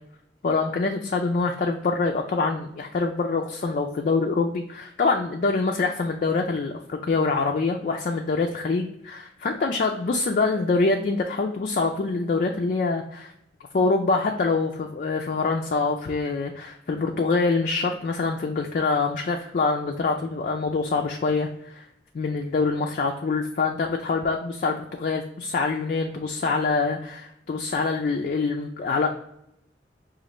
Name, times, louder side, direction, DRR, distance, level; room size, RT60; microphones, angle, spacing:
voice 1, 0.4-13.3 13.7-21.9 22.1-29.1, left 4 dB, 45° left, 2 dB, 0.3 m, -25 dB
5.2 x 2.4 x 2.9 m, 0.77 s
head